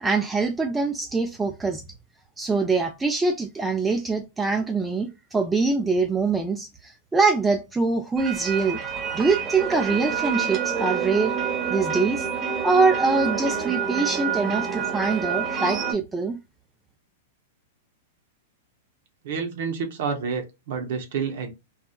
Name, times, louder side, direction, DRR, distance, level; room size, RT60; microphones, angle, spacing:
voice 1, 0.0-1.8 2.4-8.8 9.1-11.3 11.7-12.3 12.6-16.4, right 4 dB, 10° right, 0.3 m, -24 dB
sound 1, 8.2-15.9, right 7 dB, 30° right, 0.8 m, -28 dB
voice 2, 19.2-21.5, right 6 dB, 65° right, 0.7 m, -29 dB
2.8 x 2.3 x 2.2 m
hypercardioid pair, 120°, 0 cm